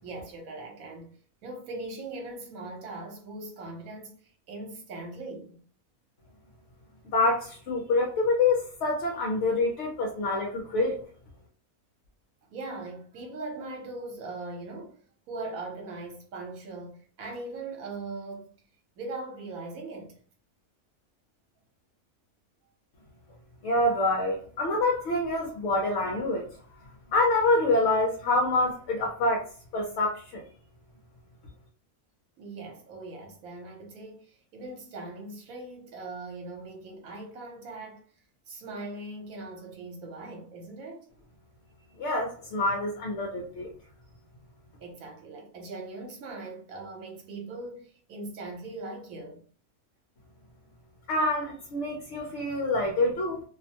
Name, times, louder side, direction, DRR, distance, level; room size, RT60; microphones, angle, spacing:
voice 1, 0.0-1.2 1.4-4.2 4.5-5.6 12.5-15.0 15.3-18.6 19.0-20.2 32.4-38.0 38.5-41.1 44.8-49.4, right 2 dB, 70° right, 1.3 m, -40 dB
voice 2, 7.0-11.0 23.6-26.5 27.1-29.5 29.7-30.4 42.0-43.7 51.1-53.4, left 2 dB, 60° left, 0.8 m, -26 dB
2.7 x 2.1 x 2.7 m
omnidirectional pair, 1.5 m